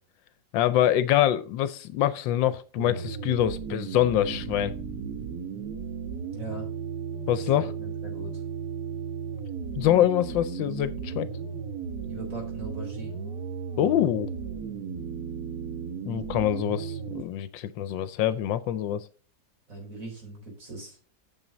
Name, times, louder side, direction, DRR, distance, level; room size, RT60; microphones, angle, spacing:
voice 1, 0.5-4.7 7.3-7.7 9.8-11.3 13.8-14.3 16.0-19.1, left 12 dB, 80° left, 1.3 m, -25 dB
sound 1, 2.8-17.2, right 6 dB, 60° right, 1.4 m, -35 dB
voice 2, 6.3-6.7 7.4-8.4 12.0-13.2 19.7-21.0, right 2 dB, 45° right, 4.4 m, -40 dB
9.0 x 6.2 x 3.9 m
omnidirectional pair, 2.0 m